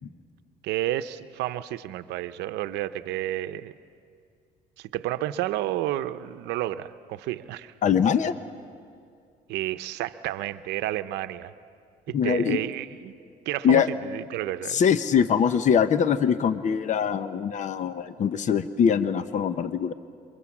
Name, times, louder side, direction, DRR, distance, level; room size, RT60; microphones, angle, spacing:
voice 1, 0.6-3.7 4.8-7.7 9.5-11.5 12.1-13.1 13.5-14.8, right 14 dB, 85° right, 12 dB, 0.7 m, -31 dB
voice 2, 7.8-8.3 12.1-12.6 13.6-13.9 14.7-19.9, left 7 dB, 45° left, 12 dB, 0.9 m, -23 dB
28.5 x 23.5 x 7.3 m, 2.4 s
cardioid pair, 110°, 17 cm